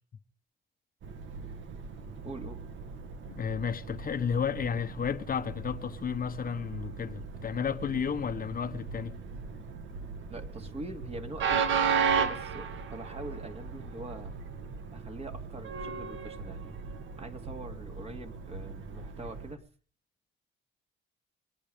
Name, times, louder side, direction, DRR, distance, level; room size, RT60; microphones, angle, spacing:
Train, 1.0-19.6, right 6 dB, 70° right, 2.1 m, -36 dB
voice 1, 2.2-2.6 10.2-14.3 14.9-16.7 17.2-19.6, right 2 dB, 30° right, 2.9 m, -43 dB
voice 2, 3.3-9.2, left 7 dB, 45° left, 1.2 m, -32 dB
25.5 x 9.9 x 5.2 m
cardioid pair, 90°, 20 cm